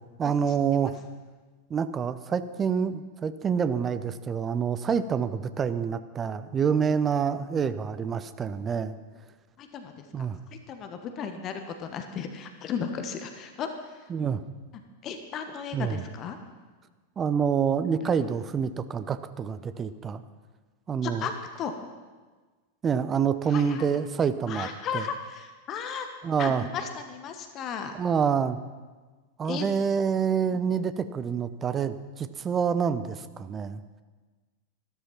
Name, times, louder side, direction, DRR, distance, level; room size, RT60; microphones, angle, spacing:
voice 1, 0.2-1.0 1.7-8.9 10.1-10.4 14.1-14.4 15.7-16.0 17.2-20.2 20.9-21.3 22.8-24.7 24.9-25.1 26.2-26.6 27.9-28.6 29.4-33.8, right 7 dB, 20° right, 13 dB, 0.7 m, -27 dB
voice 2, 9.6-10.0 10.5-13.7 15.0-16.4 21.0-21.3 21.6-21.7 23.5-23.9 24.5-26.1 26.4-27.9 29.5-29.6, left 7 dB, 35° left, 6 dB, 1.2 m, -35 dB
13.0 x 12.5 x 5.9 m, 1.3 s
figure-of-eight pair, 90°, 0 cm